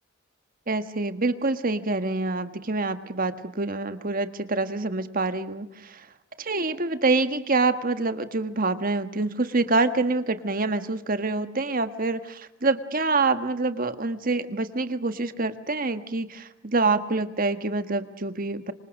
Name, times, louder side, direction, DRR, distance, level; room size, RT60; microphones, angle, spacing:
voice 1, 0.7-6.1 6.4-18.7, right 3 dB, 45° right, 10 dB, 1.5 m, -26 dB
26.5 x 26.0 x 6.5 m, 0.87 s
head